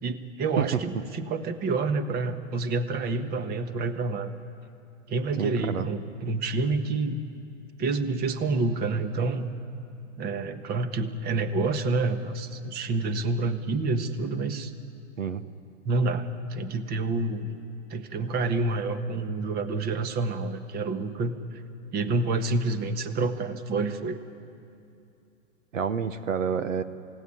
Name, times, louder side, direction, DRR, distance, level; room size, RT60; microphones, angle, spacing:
voice 1, 0.0-4.4 5.1-7.2 7.8-9.5 10.2-14.7 15.8-17.5 17.9-21.6 21.9-24.2, right 3 dB, 25° right, 10 dB, 1.4 m, -28 dB
voice 2, 5.3-5.9 15.2-15.4 25.7-26.8, right 7 dB, 90° right, 12 dB, 1.3 m, -28 dB
27.5 x 17.5 x 9.9 m, 2.6 s
hypercardioid pair, 130°, 37 cm